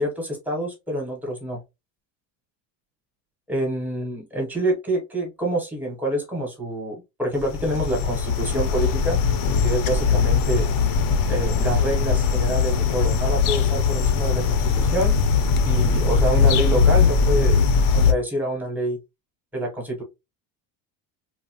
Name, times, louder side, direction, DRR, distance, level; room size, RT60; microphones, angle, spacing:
voice 1, 0.0-1.6 3.5-9.2 9.6-10.7 11.3-15.2 15.6-17.7 17.9-19.0 19.5-20.0, right 1 dB, 5° right, -1 dB, 0.6 m, -27 dB
sound 1, 7.4-18.1, left 5 dB, 55° left, 0.5 m, -20 dB
3.0 x 2.0 x 2.7 m, 0.24 s
cardioid pair, 180°, 44 cm